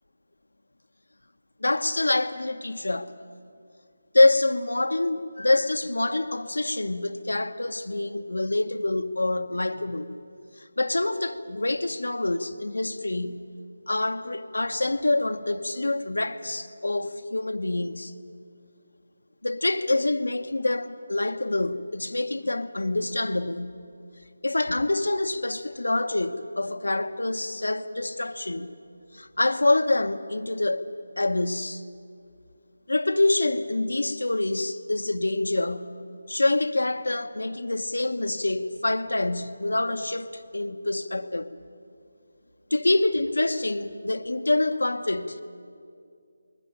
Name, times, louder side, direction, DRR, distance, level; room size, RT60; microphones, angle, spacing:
voice 1, 1.6-3.1 4.1-10.2 10.8-13.5 13.9-18.1 19.4-23.8 24.4-28.8 29.1-30.8 31.2-31.8 32.9-36.0 36.3-41.5 42.7-45.4, left 2 dB, 85° left, 9 dB, 1.2 m, -26 dB
21.0 x 19.5 x 8.8 m, 2.3 s
figure-of-eight pair, 165°, 0 cm